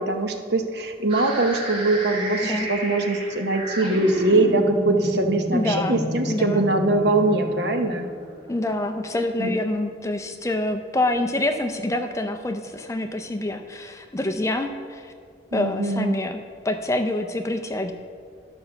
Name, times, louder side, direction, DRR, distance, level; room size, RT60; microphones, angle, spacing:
voice 1, 0.0-8.1 9.4-9.5 15.5-16.2, right 2 dB, 60° right, 5 dB, 0.9 m, -22 dB
sound 1, 1.1-9.0, equal, 25° right, 1.5 m, -31 dB
voice 2, 5.5-6.6 8.5-15.1 15.5-17.9, left 1 dB, 15° left, 6 dB, 0.5 m, -26 dB
11.5 x 5.5 x 6.9 m, 2.1 s
head